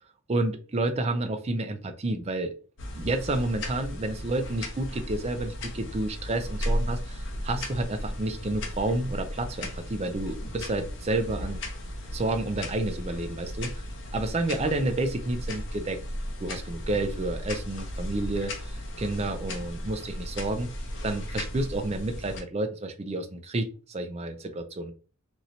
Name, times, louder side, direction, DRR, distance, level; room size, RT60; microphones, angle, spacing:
voice 1, 0.3-2.5 2.9-11.6 12.1-13.7 14.1-16.0 16.4-20.7 21.0-24.9, right 2 dB, 30° right, 7 dB, 0.4 m, -30 dB
sound 1, 2.8-22.4, left 1 dB, 55° left, 0.7 m, -35 dB
3.0 x 2.6 x 2.8 m, 0.37 s
head